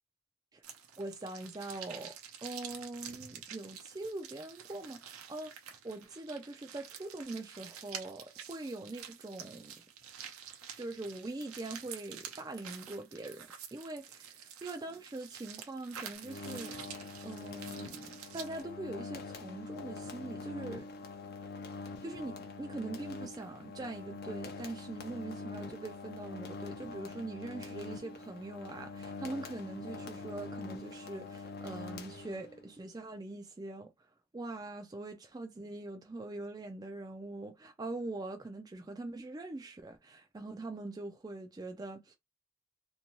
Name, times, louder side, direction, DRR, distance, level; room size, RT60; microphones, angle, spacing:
sound 1, 0.6-18.6, right 8 dB, 85° right, 0.7 m, -48 dB
voice 1, 1.0-2.2 2.4-5.5 5.8-9.7 10.8-16.8 17.2-20.9 22.0-33.9 34.3-42.1, right 2 dB, 20° right, 0.3 m, -43 dB
sound 2, 16.2-32.7, left 3 dB, 45° left, 0.5 m, -44 dB
2.6 x 2.2 x 2.9 m
head